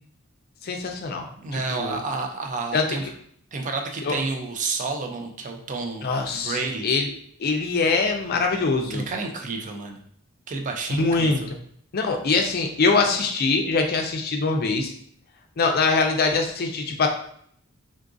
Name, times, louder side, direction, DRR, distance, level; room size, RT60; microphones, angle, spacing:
voice 1, 0.6-1.3 1.5-2.0 2.7-3.1 4.0-4.2 6.0-7.1 7.4-9.1 11.0-11.6 11.9-14.9 15.6-17.1, left 4 dB, 50° left, 3 dB, 0.4 m, -23 dB
voice 2, 1.4-3.0 3.5-6.1 6.4-6.9 8.9-10.0 10.5-11.5, right 3 dB, 40° right, 3 dB, 0.4 m, -30 dB
3.8 x 2.4 x 2.4 m, 0.64 s
head